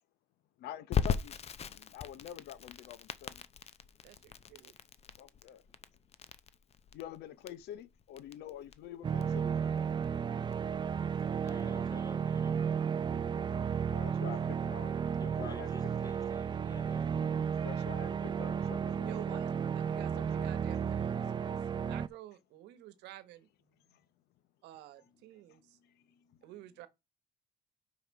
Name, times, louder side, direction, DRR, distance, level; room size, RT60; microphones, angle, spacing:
voice 1, 0.6-1.4 1.6-3.4 5.2-5.6 6.9-9.5 13.3-15.7 17.5-19.4 20.1-20.4 23.9-24.0 25.5-25.6, left 10 dB, 80° left, 0.8 m, -47 dB
Crackle, 0.9-11.6, left 7 dB, 40° left, 0.6 m, -39 dB
voice 2, 4.0-4.7 19.0-21.6 21.9-23.5 24.6-25.8 26.4-26.9, right 14 dB, 90° right, 1.1 m, -50 dB
sound 1, 9.0-22.1, right 7 dB, 25° right, 0.4 m, -33 dB
voice 3, 11.4-12.6 15.1-17.6 25.0-26.8, left 2 dB, 20° left, 1.8 m, -53 dB
5.6 x 5.5 x 5.2 m
cardioid pair, 110°, 17 cm